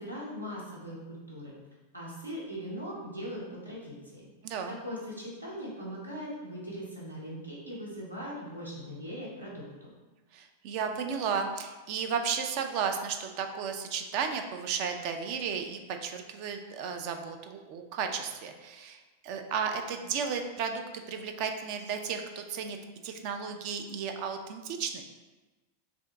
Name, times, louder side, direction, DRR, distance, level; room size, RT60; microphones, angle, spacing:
voice 1, 0.0-1.5 1.9-4.3 4.7-9.9, equal, 85° right, -5 dB, 1.0 m, -40 dB
voice 2, 4.4-4.8 10.3-20.8 21.1-22.8 23.0-25.0, right 6 dB, 45° right, 5 dB, 0.3 m, -34 dB
3.5 x 2.5 x 3.3 m, 1.2 s
figure-of-eight pair, 90°, 0 cm